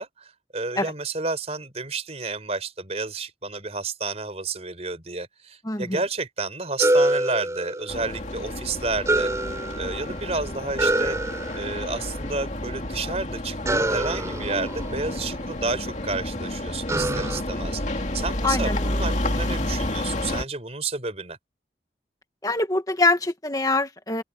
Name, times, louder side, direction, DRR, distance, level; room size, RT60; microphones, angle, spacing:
voice 1, 0.0-9.3 9.8-11.2 11.5-21.4, right 3 dB, 35° right, 4.7 m, -31 dB
voice 2, 5.6-6.0 18.4-19.0 22.4-24.2, left 2 dB, 20° left, 2.1 m, -24 dB
sound 1, 6.8-8.3 9.0-10.3 10.8-12.0 13.6-15.7 16.9-17.4, right 1 dB, 15° right, 4.4 m, -26 dB
sound 2, 7.9-20.4, left 1 dB, 40° left, 2.5 m, -30 dB
open air
head